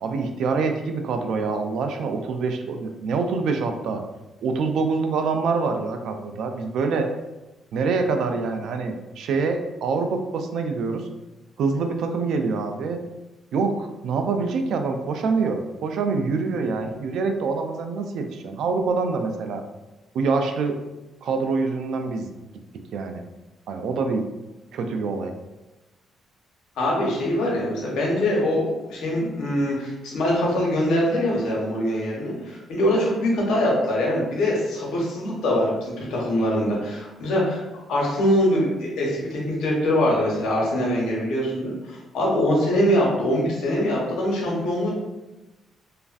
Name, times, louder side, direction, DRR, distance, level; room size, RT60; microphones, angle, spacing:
voice 1, 0.0-4.0 4.4-7.1 7.7-11.1 11.6-13.0 13.5-19.6 20.1-20.8 21.2-22.3 22.9-23.2 23.7-24.2 24.7-25.3, right 4 dB, 75° right, 5 dB, 0.3 m, -25 dB
voice 2, 26.8-37.6 37.9-44.9, left 1 dB, 80° left, -3 dB, 0.9 m, -23 dB
3.0 x 2.4 x 2.4 m, 1.0 s
cardioid pair, 90°, 0 cm